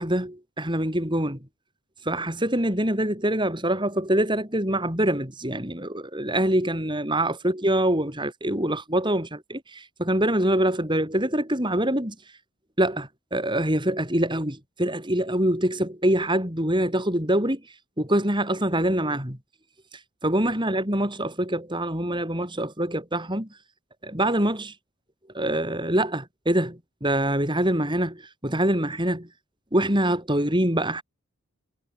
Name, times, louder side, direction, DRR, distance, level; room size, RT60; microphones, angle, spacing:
voice 1, 0.0-1.4 2.1-12.2 12.8-17.6 18.0-19.4 20.2-23.5 24.0-24.7 25.3-29.3 29.7-31.0, right 1 dB, 20° right, 7.3 m, -25 dB
head